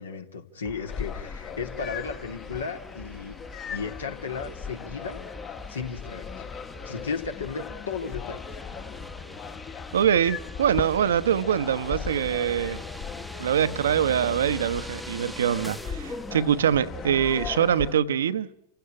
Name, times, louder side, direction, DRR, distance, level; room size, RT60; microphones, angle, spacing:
voice 1, 0.0-3.4 3.7-6.5 6.8-8.6, left 5 dB, 70° left, 2.8 m, -35 dB
sound 1, 0.6-17.5, equal, ahead, 1.1 m, -43 dB
sound 2, 0.9-18.0, left 7 dB, 30° left, 1.5 m, -39 dB
voice 2, 9.9-12.8 13.4-18.5, right 9 dB, 65° right, 1.0 m, -24 dB
29.0 x 16.0 x 8.9 m
figure-of-eight pair, 90°, 0 cm